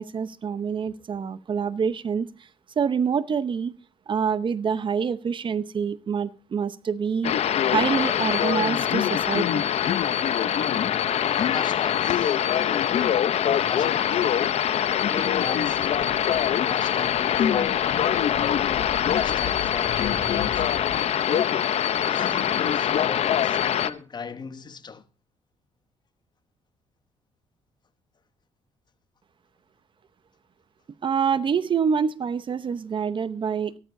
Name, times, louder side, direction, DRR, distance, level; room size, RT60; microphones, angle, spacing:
voice 1, 0.0-2.3 2.8-3.7 4.1-7.3 7.7-9.7 31.0-33.8, right 6 dB, 40° right, 0.8 m, -26 dB
sound 1, 7.2-23.9, left 9 dB, 60° left, 0.8 m, -23 dB
voice 2, 10.6-14.3 15.0-16.3 16.6-18.8 19.1-21.0 22.0-25.1, left 5 dB, 35° left, 1.0 m, -38 dB
sound 2, 15.1-21.0, left 7 dB, 80° left, 2.5 m, -40 dB
16.5 x 13.0 x 2.6 m
cardioid pair, 100°, 12 cm